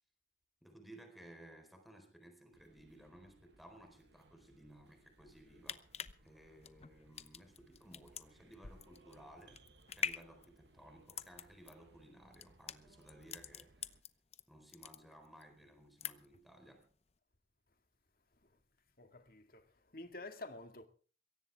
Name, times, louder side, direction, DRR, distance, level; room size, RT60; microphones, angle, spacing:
voice 1, 0.6-5.9 6.2-9.7 10.0-13.9 14.5-16.9, right 1 dB, ahead, 4.3 m, -58 dB
sound 1, 2.5-14.0, right 2 dB, 75° right, 1.4 m, -67 dB
sound 2, 5.4-14.4 14.7-15.5 15.8-16.4 16.8-16.9, left 8 dB, 35° left, 0.8 m, -45 dB
voice 2, 19.0-19.7 19.9-20.9, left 2 dB, 55° left, 2.0 m, -49 dB
22.5 x 17.0 x 3.6 m
head